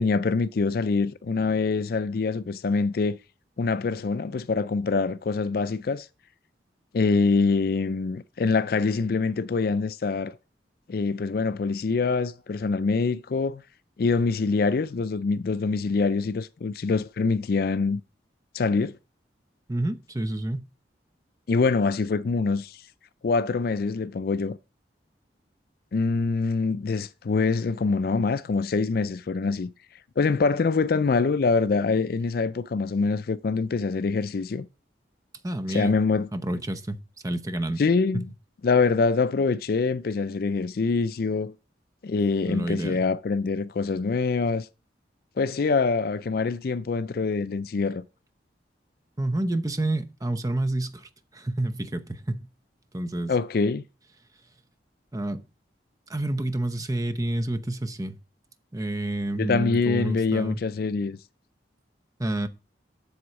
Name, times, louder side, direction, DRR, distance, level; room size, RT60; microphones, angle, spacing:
voice 1, 0.0-3.2 3.6-6.1 6.9-10.4 10.9-13.6 14.0-18.0 18.5-19.0 21.5-22.8 23.2-24.6 25.9-29.7 30.2-34.7 35.7-36.3 37.8-38.3 38.6-41.5 42.0-44.7 45.4-48.0 53.3-53.8 59.4-61.2, left 4 dB, 55° left, 0.4 m, -25 dB
voice 2, 19.7-20.6 35.4-36.0 36.3-37.0 37.2-37.8 38.1-38.3 42.4-43.0 49.2-52.5 52.9-53.3 55.1-55.4 56.1-58.2 58.7-60.6 62.2-62.5, right 1 dB, 20° right, 0.8 m, -29 dB
7.9 x 7.0 x 4.1 m
head